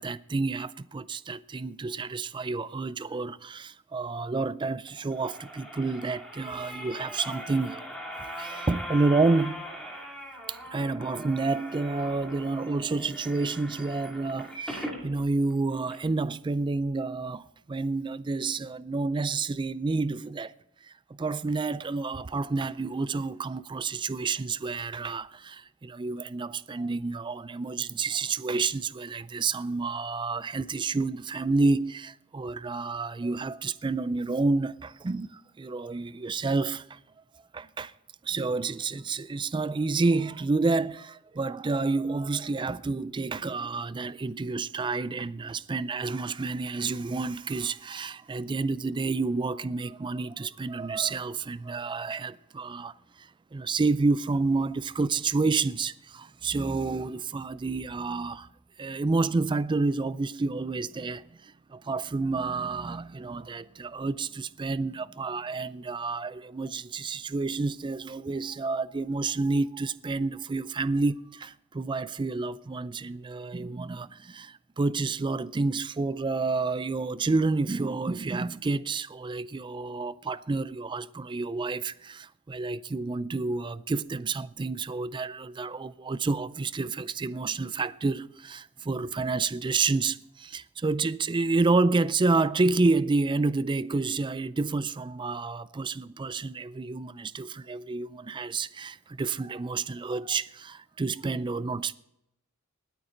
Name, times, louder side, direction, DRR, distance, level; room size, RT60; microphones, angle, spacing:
voice 1, 0.0-7.8 8.2-9.6 10.5-20.5 20.8-37.0 37.5-37.9 38.2-58.5 58.8-101.9, right 3 dB, 20° right, 0.4 m, -29 dB
sound 1, 4.9-15.0 15.5-15.6 15.9-16.0, equal, 5° left, 2.6 m, -40 dB
20.0 x 9.3 x 3.9 m
head